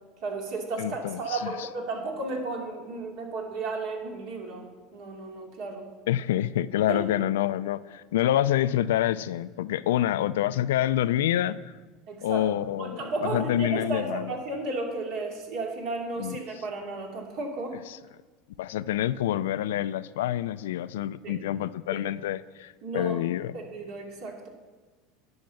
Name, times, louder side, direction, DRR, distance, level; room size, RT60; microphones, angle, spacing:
voice 1, 0.2-5.9 6.9-7.0 12.1-12.4 12.8-17.8 21.2-21.4 21.9-22.1 22.8-23.2 23.5-24.5, right 3 dB, 60° right, 1 dB, 2.5 m, -33 dB
voice 2, 0.8-1.7 6.1-11.6 12.2-14.3 16.2-16.4 17.9-18.0 18.6-23.6, left 12 dB, 90° left, 16 dB, 0.4 m, -27 dB
10.5 x 6.4 x 7.1 m, 1.4 s
supercardioid pair, 120°, 0 cm